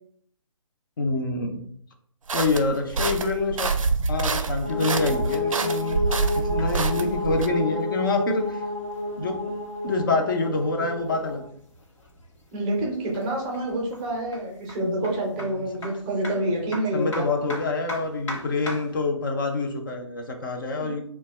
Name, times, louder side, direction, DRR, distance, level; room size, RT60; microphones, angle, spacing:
voice 1, 1.0-1.6 2.3-3.7 4.1-8.6 9.2-9.6 9.8-11.4 16.9-21.0, left 3 dB, 40° left, 3 dB, 0.4 m, -26 dB
sound 1, 2.3-7.5, right 4 dB, 80° right, 0.4 m, -26 dB
sound 2, 4.6-11.5, left 2 dB, 85° left, 1.0 m, -30 dB
sound 3, 5.7-19.0, left 1 dB, 65° left, 1.0 m, -43 dB
voice 2, 12.5-17.3 20.8-20.9, right 1 dB, 20° right, -1 dB, 0.5 m, -27 dB
2.7 x 2.2 x 3.1 m, 0.63 s
figure-of-eight pair, 140°, 17 cm